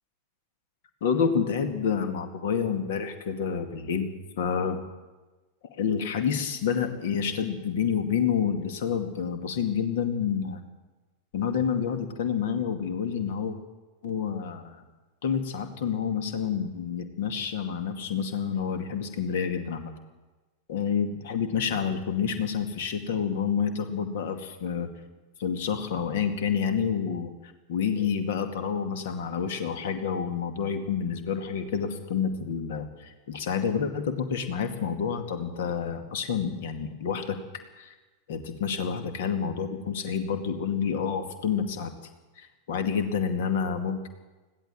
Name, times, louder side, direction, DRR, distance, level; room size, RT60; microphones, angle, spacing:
voice 1, 1.0-4.8 5.8-10.6 11.3-13.6 14.0-14.8 15.2-19.9 20.7-24.9 25.4-27.3 27.7-37.4 37.8-37.9 38.3-41.9 42.4-44.1, left 7 dB, 55° left, 8 dB, 2.4 m, -28 dB
21.0 x 16.5 x 7.7 m, 1.2 s
figure-of-eight pair, 90°, 0 cm